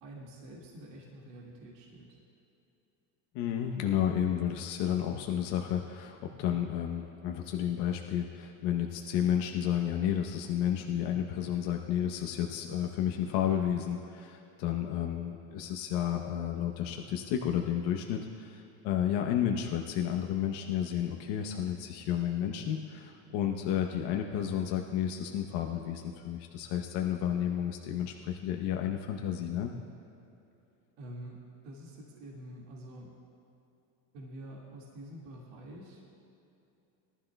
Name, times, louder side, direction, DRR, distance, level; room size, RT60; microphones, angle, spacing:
voice 1, 0.0-2.2 31.0-33.1 34.1-36.0, right 1 dB, 75° right, -3 dB, 2.1 m, -47 dB
voice 2, 3.3-29.7, left 10 dB, 65° left, 2 dB, 1.0 m, -31 dB
19.0 x 12.5 x 2.3 m, 2.8 s
supercardioid pair, 110°, 47 cm